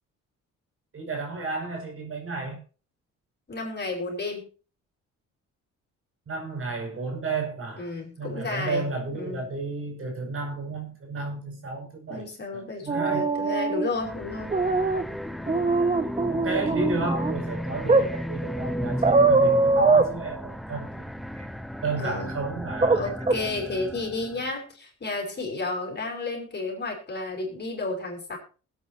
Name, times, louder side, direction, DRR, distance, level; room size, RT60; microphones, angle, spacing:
voice 1, 0.9-2.6 6.3-7.9 8.2-12.3 12.5-13.3 16.0-21.1 21.8-23.0, right 3 dB, 45° right, 5.4 m, -32 dB
voice 2, 3.5-4.5 7.8-9.5 12.1-14.5 22.0-22.3 22.9-28.4, left 3 dB, 35° left, 6.2 m, -32 dB
sound 1, 12.9-13.9 14.5-15.0 15.5-17.3 17.9-18.1 19.0-20.1 22.8-23.0 23.3-23.4, right 3 dB, 20° right, 1.3 m, -21 dB
sound 2, 13.9-24.5, equal, ahead, 0.9 m, -34 dB
20.5 x 9.1 x 2.8 m
cardioid pair, 90°, 30 cm